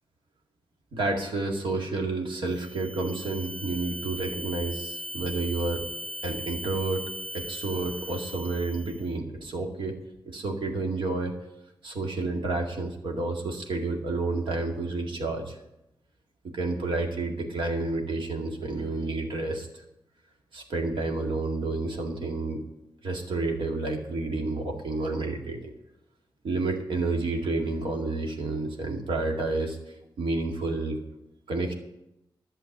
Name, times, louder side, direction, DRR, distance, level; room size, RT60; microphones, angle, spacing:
voice 1, 0.9-5.8 6.2-7.0 7.3-10.0 10.3-11.3 11.8-15.6 16.5-19.8 20.5-22.6 23.0-25.6 26.4-31.0 31.5-31.7, right 3 dB, 80° right, 2 dB, 2.1 m, -30 dB
sound 1, 2.5-9.1, equal, 15° right, 1.4 m, -38 dB
11.5 x 7.2 x 7.2 m, 0.86 s
cardioid pair, 65°, 8 cm